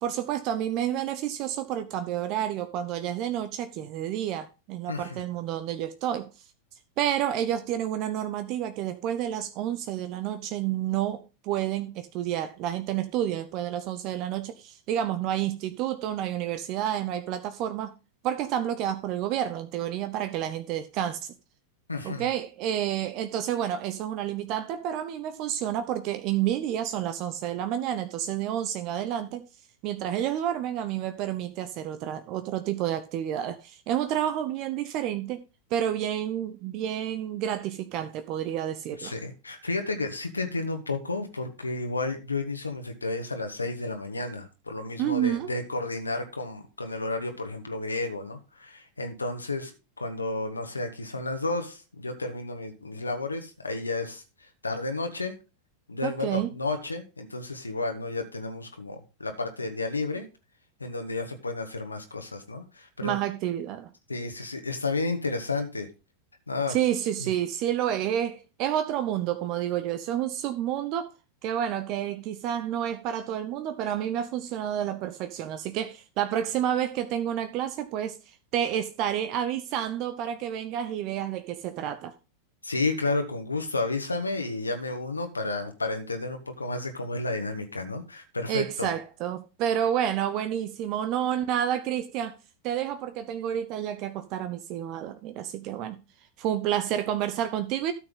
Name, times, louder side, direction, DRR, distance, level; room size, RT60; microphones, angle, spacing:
voice 1, 0.0-6.3 7.0-17.9 18.2-21.3 22.0-29.5 29.8-35.4 35.7-39.1 45.0-45.5 56.0-56.5 63.0-63.9 66.7-71.1 71.4-78.2 78.5-82.1 88.5-92.4 92.6-96.0 96.4-97.9, right 10 dB, 40° right, 0.8 m, -29 dB
voice 2, 4.9-5.2 21.9-22.3 39.0-54.2 54.6-55.3 55.9-60.2 60.8-63.2 64.1-65.9 66.5-66.8 67.2-67.3 82.6-88.9, left 3 dB, 80° left, 1.5 m, -32 dB
13.0 x 6.5 x 3.7 m
figure-of-eight pair, 90°, 0 cm